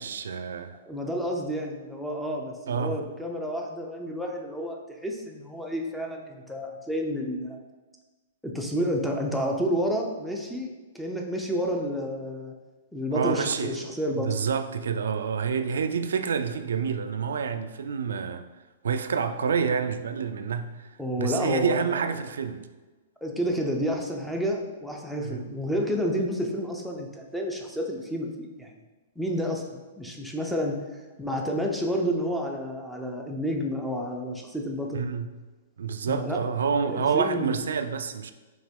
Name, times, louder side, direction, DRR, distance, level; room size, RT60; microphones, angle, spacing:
voice 1, 0.0-0.8 2.7-3.0 13.1-13.8 14.2-18.5 18.8-20.9 21.2-22.7 25.2-25.4 34.9-35.3 35.8-38.3, right 6 dB, 90° right, 0.3 m, -28 dB
voice 2, 0.8-7.6 8.4-12.5 12.9-14.4 21.0-22.1 23.2-28.7 29.2-35.1 36.0-36.4 36.9-37.6, equal, ahead, 0.4 m, -30 dB
5.0 x 3.0 x 3.6 m
hypercardioid pair, 155°, 0 cm